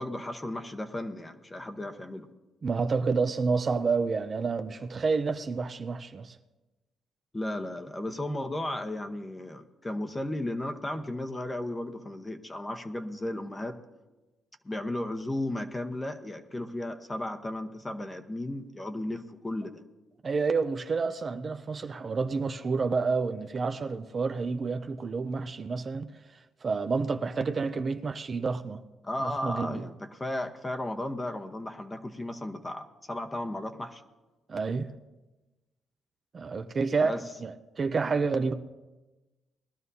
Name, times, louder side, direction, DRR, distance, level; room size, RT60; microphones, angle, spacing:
voice 1, 0.0-2.3 7.3-13.8 14.6-19.8 29.0-34.0 37.0-37.2, left 1 dB, 20° left, 1.0 m, -35 dB
voice 2, 2.6-6.4 20.2-26.1 26.6-28.8 29.2-29.8 34.5-34.9 36.3-38.5, right 4 dB, 40° right, 0.6 m, -29 dB
20.5 x 12.5 x 2.8 m
cardioid pair, 90°, 0 cm